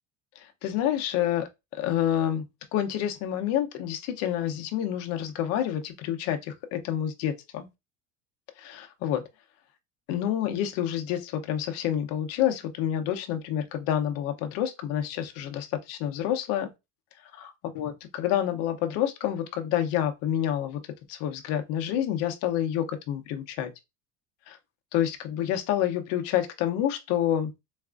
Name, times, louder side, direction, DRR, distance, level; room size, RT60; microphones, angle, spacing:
voice 1, 0.4-1.5 1.8-2.4 2.7-7.7 8.6-9.2 10.1-16.7 17.4-20.8 21.1-23.7 24.5-24.6 24.9-27.5, left 11 dB, 50° left, 0.6 m, -28 dB
4.0 x 2.4 x 2.3 m
cardioid pair, 180°, 33 cm